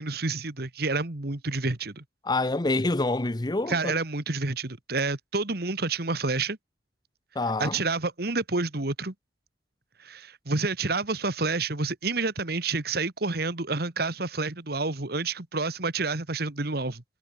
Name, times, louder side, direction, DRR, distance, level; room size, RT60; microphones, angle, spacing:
voice 1, 0.0-2.0 3.7-6.6 7.6-9.1 10.0-17.0, right 3 dB, 60° right, 1.8 m, -29 dB
voice 2, 2.2-3.9 7.3-7.8, left 2 dB, 25° left, 0.7 m, -26 dB
head